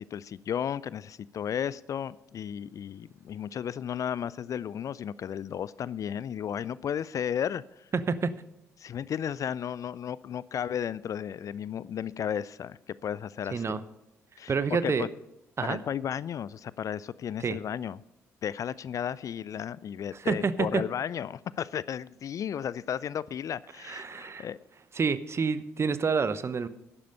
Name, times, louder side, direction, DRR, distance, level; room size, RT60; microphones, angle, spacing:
voice 1, 0.0-7.9 8.8-13.8 14.4-15.1 15.6-18.0 18.4-24.6, left 9 dB, 45° left, 20 dB, 0.4 m, -34 dB
voice 2, 14.5-15.1 15.6-15.8 17.4-17.6 20.2-20.8 23.8-24.5 25.0-26.7, right 5 dB, 35° right, 15 dB, 0.9 m, -28 dB
11.5 x 9.9 x 5.4 m, 0.87 s
figure-of-eight pair, 45°, 8 cm